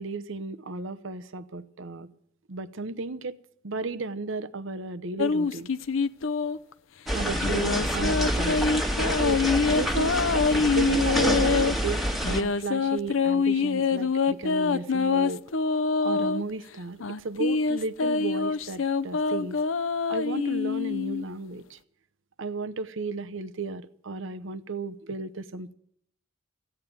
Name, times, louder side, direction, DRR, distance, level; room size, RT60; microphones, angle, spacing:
voice 1, 0.0-2.1 2.5-3.4 3.6-5.7 7.1-8.6 9.2-10.2 10.8-15.4 16.0-19.6 20.1-21.8 22.4-25.7, right 3 dB, 70° right, 0.9 m, -34 dB
sound 1, 5.2-6.7 7.4-11.7 12.2-16.4 17.0-21.2, left 4 dB, 70° left, 0.6 m, -25 dB
sound 2, 7.1-12.4, equal, ahead, 1.5 m, -27 dB
15.5 x 9.0 x 9.4 m
head